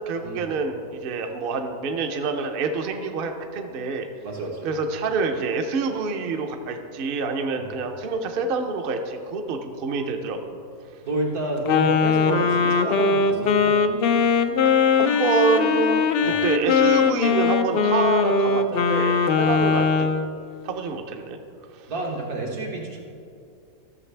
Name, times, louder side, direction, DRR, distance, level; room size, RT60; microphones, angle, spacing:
voice 1, 0.0-4.1 4.6-10.6 14.6-19.9 20.6-21.4, right 4 dB, 50° right, 4 dB, 0.7 m, -27 dB
voice 2, 4.2-4.7 7.6-7.7 11.0-13.8 16.2-16.4 19.4-19.5 21.9-23.0, right 1 dB, 85° right, -2 dB, 1.9 m, -29 dB
Wind instrument woodwind instrument, 11.7-20.3, left 5 dB, 80° left, 0.5 m, -20 dB
13.5 x 6.6 x 3.3 m, 2.4 s
omnidirectional pair, 1.5 m